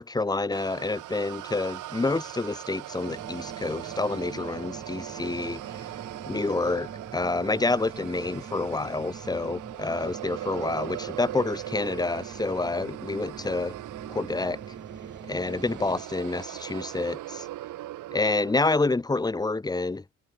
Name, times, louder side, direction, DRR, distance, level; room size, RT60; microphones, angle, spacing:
voice 1, 0.0-5.6 6.3-13.7 14.1-14.6 15.3-17.5 18.1-20.2, left 3 dB, 15° left, 0.8 m, -28 dB
sound 1, 0.5-18.8, right 15 dB, 85° right, 2.0 m, -40 dB
sound 2, 3.0-16.0, right 5 dB, 40° right, 7.5 m, -44 dB
cardioid pair, 90°, 30 cm